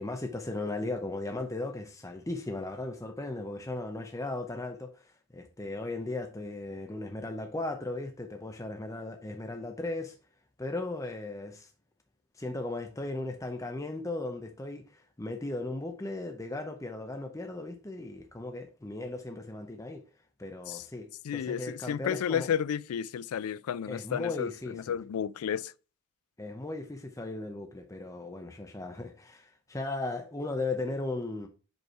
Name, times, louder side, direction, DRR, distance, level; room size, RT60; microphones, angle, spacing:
voice 1, 0.0-10.2 10.6-11.7 12.4-20.0 20.4-22.5 23.8-25.0 26.4-31.5, left 2 dB, 15° left, 0.6 m, -37 dB
voice 2, 21.2-25.7, left 8 dB, 80° left, 0.3 m, -32 dB
5.2 x 4.7 x 4.6 m
head